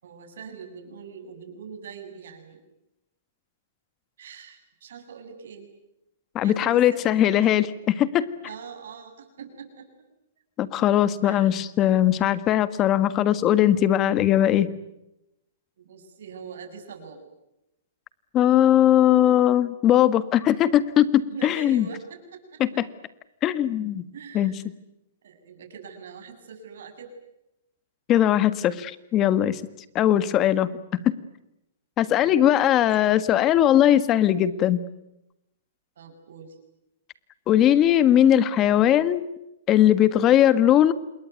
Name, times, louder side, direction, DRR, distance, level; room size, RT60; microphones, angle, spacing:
voice 1, 0.0-2.6 4.2-5.7 6.4-7.4 8.4-10.1 11.2-11.6 15.8-17.3 21.3-22.8 24.1-24.6 25.2-27.1 32.1-32.6 33.0-33.1 36.0-36.6, right 6 dB, 75° right, 6 dB, 7.7 m, -43 dB
voice 2, 6.3-8.3 10.6-14.7 18.3-21.8 22.6-22.9 23.4-24.1 24.3-24.5 28.1-29.6 29.9-30.7 31.0-31.1 32.0-34.8 37.5-39.3 39.7-40.9, left 11 dB, 25° left, 14 dB, 1.6 m, -19 dB
28.0 x 21.5 x 9.4 m, 0.88 s
hypercardioid pair, 150°, 0 cm